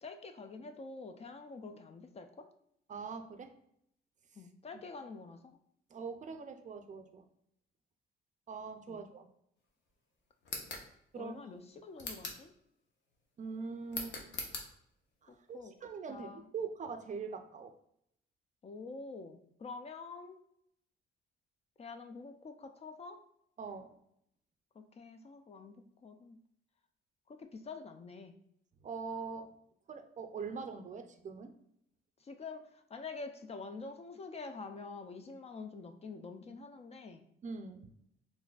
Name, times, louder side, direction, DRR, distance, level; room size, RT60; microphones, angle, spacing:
voice 1, 0.0-2.5 4.4-5.6 8.9-9.0 11.2-12.5 15.3-15.7 16.1-16.4 18.6-20.4 21.8-23.2 24.8-25.8 26.0-26.4 27.3-28.3 32.2-37.2, left 4 dB, 30° left, 7 dB, 0.3 m, -47 dB
voice 2, 2.9-3.5 4.7-4.8 5.9-7.3 8.5-9.3 11.1-11.3 13.4-14.2 15.2-17.7 23.6-23.9 28.8-29.5 29.9-31.5 37.4-37.9, right 5 dB, 40° right, 7 dB, 0.4 m, -42 dB
sound 1, 10.4-10.9 12.0-12.5 13.9-14.7, left 3 dB, 65° left, 0.8 m, -41 dB
3.7 x 2.5 x 2.3 m, 0.72 s
cardioid pair, 90°, 20 cm